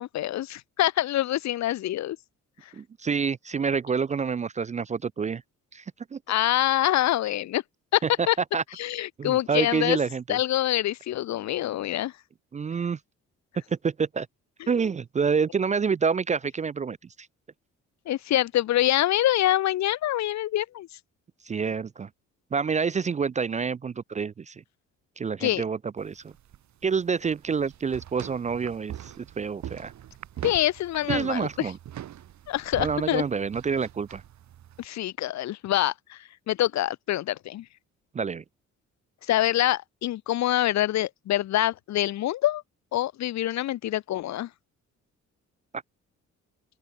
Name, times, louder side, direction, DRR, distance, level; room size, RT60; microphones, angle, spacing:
voice 1, 0.0-2.2 6.3-7.6 7.9-8.4 8.8-10.0 10.3-12.1 14.6-14.7 18.1-20.9 25.4-25.6 30.4-31.7 32.5-33.2 34.8-36.2 36.5-37.6 39.3-42.6 42.9-44.5, left 14 dB, 65° left, 0.7 m, -25 dB
voice 2, 2.7-5.4 5.7-5.8 6.1-6.2 8.0-8.1 8.5-8.6 9.2-10.4 12.5-13.0 13.8-14.3 14.7-17.0 21.5-22.1 22.5-24.6 25.2-26.3 26.8-29.9 31.1-31.8 32.8-34.2 38.1-38.4, right 5 dB, 25° right, 0.4 m, -27 dB
sound 1, 26.0-34.9, right 11 dB, 70° right, 2.5 m, -42 dB
open air
cardioid pair, 90°, 30 cm